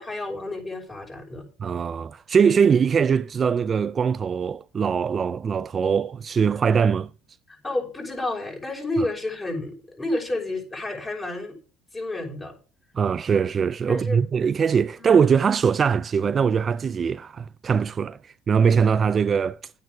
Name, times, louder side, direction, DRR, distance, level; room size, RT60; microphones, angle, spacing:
voice 1, 0.0-1.5 7.5-11.6 11.9-12.6 13.9-14.2 15.0-15.1, left 2 dB, 20° left, 6.1 m, -30 dB
voice 2, 1.6-7.1 12.9-19.7, right 6 dB, 35° right, 0.4 m, -22 dB
10.5 x 9.1 x 4.9 m
supercardioid pair, 100°, 0 cm